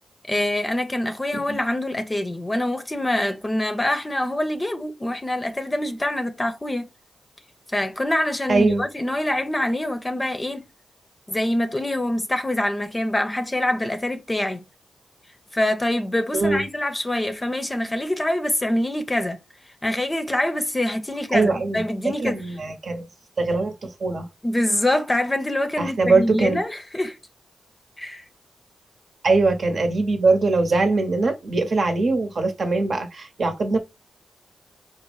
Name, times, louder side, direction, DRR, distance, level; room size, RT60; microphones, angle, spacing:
voice 1, 0.3-6.9 7.7-10.7 11.3-14.6 15.5-19.4 19.8-22.4 24.4-27.2 28.0-28.2, left 1 dB, 25° left, 0.6 m, -25 dB
voice 2, 8.5-8.8 16.3-16.6 21.3-21.8 22.2-23.1 23.4-24.3 25.8-26.6 29.2-33.8, right 3 dB, 60° right, 0.9 m, -21 dB
4.2 x 2.0 x 3.2 m
cardioid pair, 55°, 0 cm